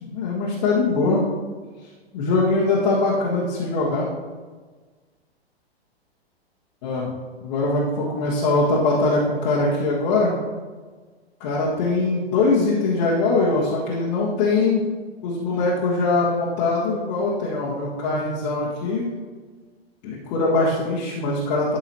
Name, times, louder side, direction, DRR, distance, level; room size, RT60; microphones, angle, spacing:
voice 1, 0.0-1.3 2.1-4.1 6.8-7.1 7.4-10.3 11.4-14.9 15.2-19.0 20.0-21.8, left 3 dB, 40° left, -6 dB, 1.5 m, -22 dB
11.5 x 5.5 x 3.0 m, 1.4 s
figure-of-eight pair, 105°, 32 cm